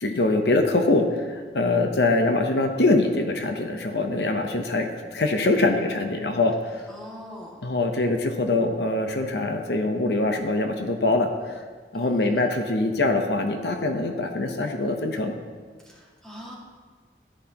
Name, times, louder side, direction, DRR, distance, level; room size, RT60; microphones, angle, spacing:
voice 1, 0.0-6.8 7.6-11.6 11.9-15.3, left 2 dB, 75° left, 4 dB, 0.8 m, -23 dB
voice 2, 6.9-7.6 11.9-12.5 15.8-16.5, left 1 dB, 5° left, -6 dB, 2.0 m, -41 dB
14.0 x 10.5 x 2.9 m, 1.5 s
head